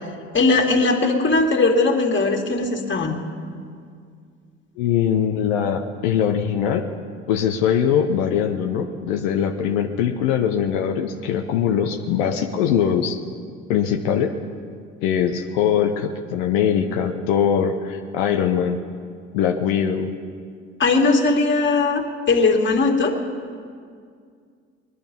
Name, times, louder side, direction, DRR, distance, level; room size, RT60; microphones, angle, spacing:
voice 1, 0.3-3.2 20.8-23.2, left 3 dB, 35° left, 2 dB, 2.4 m, -19 dB
voice 2, 4.8-6.8 7.3-13.2 13.7-14.3 15.0-18.8 19.3-20.1, left 8 dB, 80° left, 3 dB, 0.9 m, -21 dB
20.5 x 11.5 x 5.4 m, 2.1 s
hypercardioid pair, 70°, 34 cm